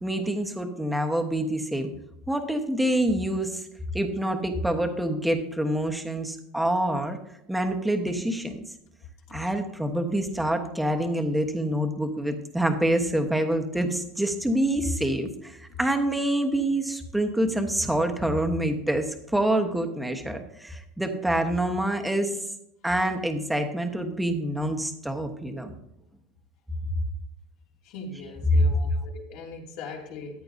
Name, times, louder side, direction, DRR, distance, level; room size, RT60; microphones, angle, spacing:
voice 1, 0.0-1.9 2.3-3.6 3.9-7.2 7.5-8.6 9.3-22.3 22.8-25.8 28.5-29.0, right 1 dB, 5° right, 5 dB, 1.2 m, -26 dB
voice 2, 27.8-30.4, left 3 dB, 65° left, 0 dB, 2.7 m, -40 dB
14.0 x 9.5 x 2.7 m, 0.79 s
supercardioid pair, 135°, 0 cm